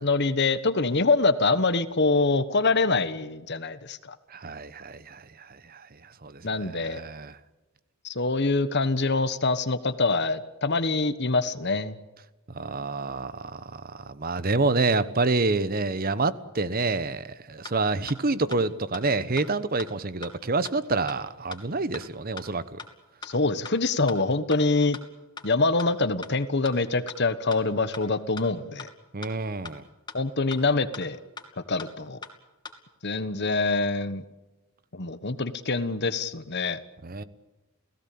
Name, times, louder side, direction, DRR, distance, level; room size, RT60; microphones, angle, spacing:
voice 1, 0.0-4.1 6.4-7.0 8.0-12.0 23.2-25.0 25.4-28.9 30.1-31.2 31.7-32.2 33.0-34.2 34.9-36.8, left 3 dB, 50° left, 1.3 m, -25 dB
voice 2, 4.3-5.9 6.2-7.4 12.5-22.8 29.1-29.8 37.0-37.2, right 3 dB, 45° right, 1.0 m, -28 dB
sound 1, 17.6-17.7 18.1-18.2 18.5-18.6 18.9-19.0 19.4-19.5 19.8-19.9 20.2-20.3 20.6-20.7 21.1-21.2 21.5-21.6 21.9-22.0 22.4-22.5 22.8-22.9 23.2-23.3 23.6-23.7 24.1-24.2 24.5-24.6 24.9-25.0 25.4-25.5 25.8-25.9 26.2-26.3 26.6-26.7 27.1-27.2 27.5-27.6 27.9-28.0 28.4-28.5 28.8-28.9 29.2-29.3 29.6-29.7 30.1-30.2 30.5-30.6 30.9-31.0 31.4-31.5 31.8-31.9 32.2-32.3 32.6-32.7, left 4 dB, 20° left, 2.7 m, -39 dB
30.0 x 17.5 x 8.7 m
head